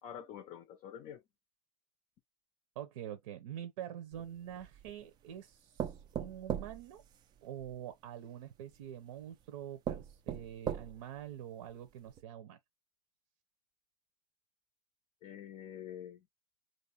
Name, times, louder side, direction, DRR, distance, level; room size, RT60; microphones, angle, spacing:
voice 1, 0.0-1.2 15.2-16.3, left 9 dB, 35° left, 0.6 m, -47 dB
voice 2, 2.8-7.0 7.4-12.6, right 10 dB, 65° right, 0.8 m, -45 dB
sound 1, 4.1-5.0 5.8-7.7 8.7-8.8 9.4-9.5 9.8-11.2 11.7-11.8 12.1-12.2, right 9 dB, 20° right, 0.4 m, -39 dB
3.1 x 2.6 x 2.9 m
hypercardioid pair, 130°, 19 cm